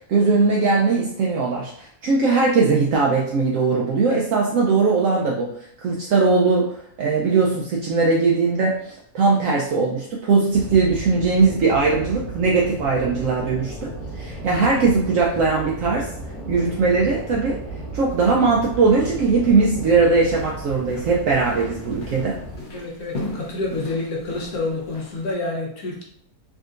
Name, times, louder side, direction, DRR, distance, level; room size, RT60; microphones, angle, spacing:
voice 1, 0.1-5.5 5.8-16.1 16.5-17.6 17.9-22.4, right 4 dB, 70° right, -3 dB, 0.8 m, -20 dB
sound 1, 10.5-22.6, right 2 dB, ahead, 1.2 m, -35 dB
sound 2, 20.1-25.3, left 2 dB, 45° left, 0.8 m, -37 dB
voice 2, 22.7-26.0, left 2 dB, 75° left, -2 dB, 1.3 m, -28 dB
3.6 x 2.6 x 2.4 m, 0.66 s
omnidirectional pair, 1.6 m